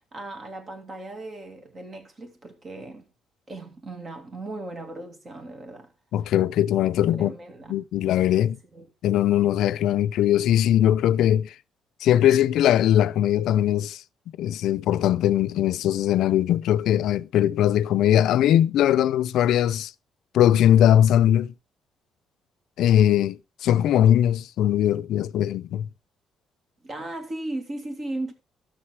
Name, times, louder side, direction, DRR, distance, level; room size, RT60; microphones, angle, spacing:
voice 1, 0.1-3.1 3.5-5.9 7.1-7.8 8.7-8.9 26.8-28.3, right 2 dB, 35° right, 2.5 m, -36 dB
voice 2, 6.1-7.3 7.7-8.6 9.0-11.5 12.0-14.0 14.4-19.9 20.3-21.5 22.8-25.9, left 11 dB, 80° left, 0.4 m, -20 dB
13.0 x 6.6 x 4.6 m
cardioid pair, 120°, 0 cm